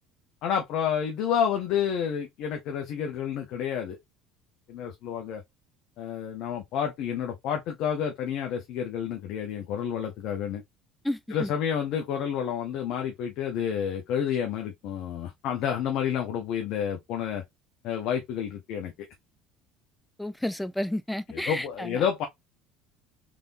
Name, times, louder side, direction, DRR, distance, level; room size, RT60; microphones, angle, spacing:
voice 1, 0.4-4.0 4.7-5.4 6.0-10.6 11.3-17.4 17.8-18.9 21.3-22.3, left 8 dB, 65° left, 0.9 m, -29 dB
voice 2, 11.0-11.5 20.2-22.1, left 1 dB, 5° left, 0.5 m, -31 dB
3.6 x 3.5 x 2.6 m
hypercardioid pair, 65°, 0 cm